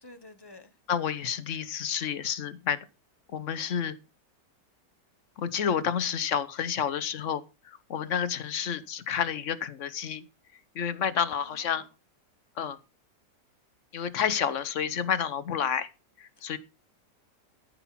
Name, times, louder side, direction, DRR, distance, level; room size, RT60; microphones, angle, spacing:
voice 1, 0.0-0.8 8.5-8.9 11.4-11.9 16.4-16.6, left 2 dB, 20° left, 0.8 m, -52 dB
voice 2, 0.9-2.9 3.3-3.9 5.4-10.3 10.7-11.8 12.6-12.8 13.9-15.9 16.2-16.6, left 8 dB, 55° left, 1.0 m, -30 dB
14.0 x 6.0 x 5.7 m
omnidirectional pair, 1.9 m